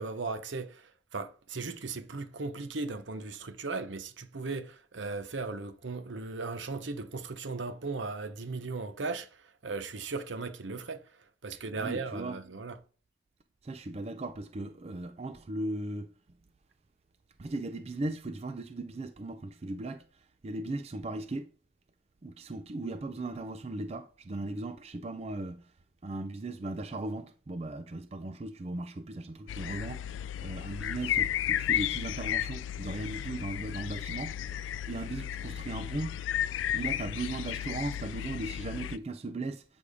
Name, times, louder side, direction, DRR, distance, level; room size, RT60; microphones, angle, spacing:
voice 1, 0.0-11.0 11.4-12.8, right 3 dB, 90° right, 0.8 m, -37 dB
voice 2, 11.8-12.4 13.6-16.1 17.4-21.5 22.2-25.6 26.0-34.4 34.9-36.2 36.7-39.6, right 2 dB, 35° right, 0.4 m, -37 dB
sound 1, 29.5-39.0, left 11 dB, 90° left, 0.3 m, -33 dB
8.3 x 3.5 x 4.9 m
head